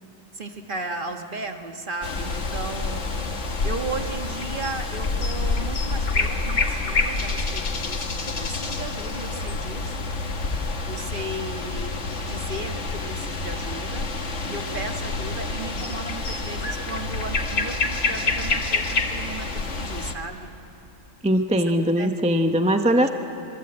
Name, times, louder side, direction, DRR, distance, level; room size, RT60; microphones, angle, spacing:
voice 1, 0.3-3.0 3.6-8.0 8.4-9.9 10.9-12.0 12.3-14.1 14.4-20.5 22.0-22.1 23.0-23.1, right 3 dB, 40° right, 4 dB, 1.5 m, -35 dB
sound 1, 2.0-20.1, left 3 dB, 65° left, 1.8 m, -27 dB
voice 2, 21.2-23.1, equal, 5° right, 6 dB, 0.6 m, -20 dB
26.0 x 22.0 x 8.9 m, 2.8 s
omnidirectional pair, 1.4 m